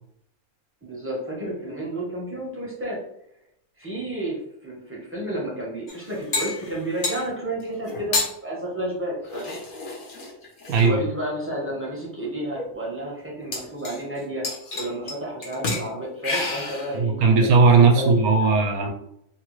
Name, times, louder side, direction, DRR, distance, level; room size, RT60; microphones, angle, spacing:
voice 1, 0.8-3.0 3.8-8.2 8.4-9.6 10.8-14.4 14.7-17.5 17.9-18.6, right 1 dB, 15° right, -5 dB, 0.6 m, -31 dB
sound 1, 5.9-7.3 7.9-8.3 9.3-10.9 11.7-11.8 12.2-12.3 12.5-12.6 13.5-14.2 14.4-15.1 15.4-15.9 16.2-17.0, left 3 dB, 50° left, 0.6 m, -29 dB
voice 2, 16.9-18.9, right 4 dB, 75° right, 4 dB, 1.0 m, -17 dB
3.0 x 2.2 x 3.0 m, 0.74 s
omnidirectional pair, 1.5 m